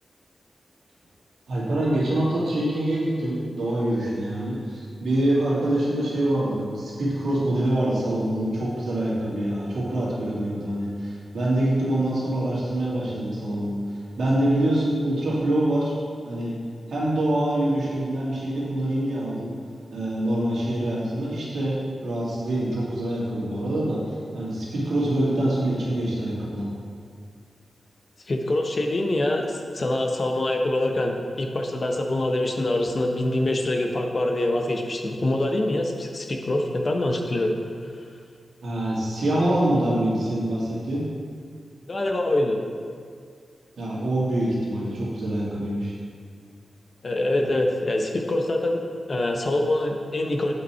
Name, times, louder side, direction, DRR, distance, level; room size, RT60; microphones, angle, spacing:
voice 1, 1.5-13.8 14.2-15.9 16.2-16.5 16.9-19.5 19.9-24.0 24.3-26.7 38.6-41.0 43.8-45.9, right 1 dB, 90° right, -7 dB, 2.2 m, -25 dB
voice 2, 28.3-37.6 41.9-42.6 47.0-48.8 49.1-50.5, left 1 dB, 35° left, 2 dB, 0.7 m, -24 dB
8.2 x 5.5 x 4.4 m, 2.1 s
wide cardioid pair, 160°, 0 cm